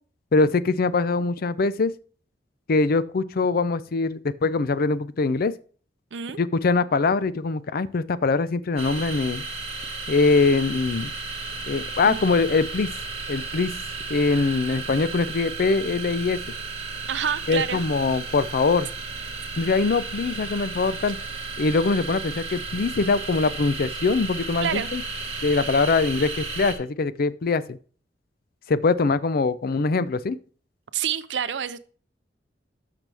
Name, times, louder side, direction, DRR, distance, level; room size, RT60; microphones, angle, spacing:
voice 1, 0.3-1.9 2.7-5.5 6.4-9.4 10.1-11.1 11.7-12.9 13.3-13.7 14.1-16.4 17.5-18.9 19.6-21.2 21.6-25.0 25.4-27.8 28.7-30.4, left 4 dB, 55° left, 0.5 m, -23 dB
sound 1, 8.8-26.7, right 4 dB, 35° right, 1.6 m, -34 dB
voice 2, 17.1-17.8 24.6-24.9 30.9-31.8, right 8 dB, 75° right, 0.5 m, -27 dB
12.0 x 5.9 x 3.4 m
head